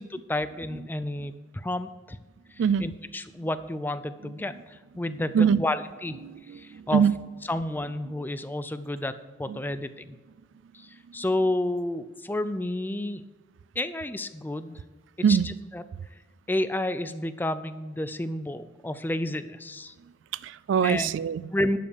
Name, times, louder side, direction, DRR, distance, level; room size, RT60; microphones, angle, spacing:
voice 1, 0.0-2.2 2.5-6.2 6.5-7.0 7.5-10.2 10.7-13.2 13.8-14.8 15.3-15.8 16.5-19.9 20.8-21.1 21.5-21.8, left 1 dB, 10° left, 0.4 m, -31 dB
voice 2, 6.2-7.2 9.5-9.6 15.2-15.5 20.3-21.5, right 7 dB, 85° right, 0.3 m, -23 dB
11.5 x 5.5 x 6.7 m
head